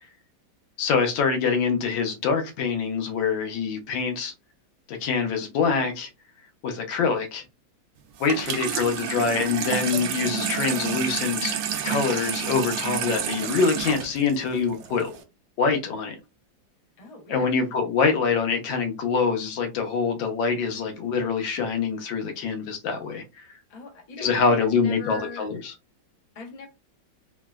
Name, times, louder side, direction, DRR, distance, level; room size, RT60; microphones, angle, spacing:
voice 1, 0.8-4.3 4.9-6.1 6.6-7.4 8.2-11.5 11.8-15.1 15.6-16.2 17.3-23.5 24.2-25.7, left 5 dB, 85° left, 1.5 m, -25 dB
Water tap faucet / Sink (filling or washing), 8.2-15.2, right 8 dB, 70° right, 1.0 m, -30 dB
voice 2, 8.3-8.9 17.0-17.5 23.7-25.5 26.3-26.7, left 4 dB, 60° left, 0.4 m, -40 dB
3.6 x 2.0 x 2.3 m
omnidirectional pair, 2.0 m